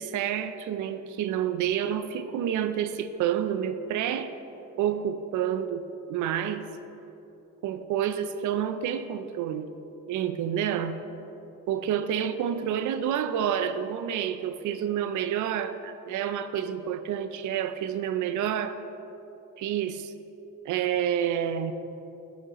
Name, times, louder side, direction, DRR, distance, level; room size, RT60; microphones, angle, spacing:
voice 1, 0.0-4.3 4.8-6.7 7.6-9.7 10.1-11.0 11.7-18.8 19.6-20.1 20.7-21.7, right 9 dB, 80° right, 11 dB, 0.5 m, -29 dB
10.5 x 7.4 x 3.0 m, 2.9 s
cardioid pair, 90°, 30 cm